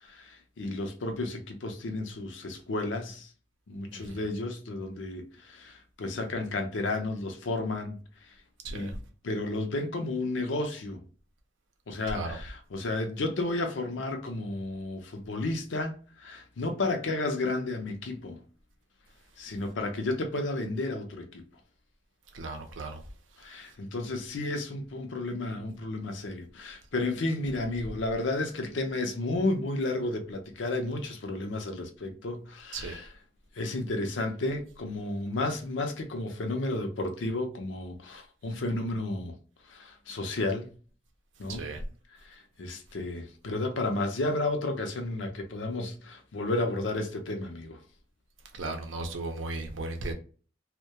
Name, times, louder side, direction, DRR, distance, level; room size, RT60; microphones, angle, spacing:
voice 1, 0.0-3.3 3.7-8.3 8.7-8.9 9.2-11.0 11.9-18.4 19.4-21.4 23.4-33.2 33.5-39.4 39.6-40.7 41.4-41.7 42.1-47.8, left 2 dB, 75° left, 0.5 m, -32 dB
voice 2, 22.3-23.0 32.7-33.0 41.6-41.8 48.6-50.1, right 2 dB, 85° right, 0.6 m, -36 dB
2.2 x 2.1 x 2.8 m
head